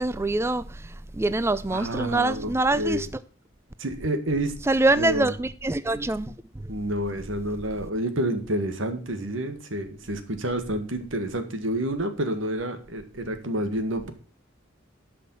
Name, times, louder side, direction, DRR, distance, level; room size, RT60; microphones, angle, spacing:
voice 1, 0.0-3.1 4.7-6.3, right 2 dB, 15° right, 0.4 m, -24 dB
voice 2, 1.7-3.1 3.8-4.5 4.9-5.3 6.7-14.1, right 1 dB, 85° right, 1.8 m, -29 dB
11.5 x 5.6 x 7.1 m
head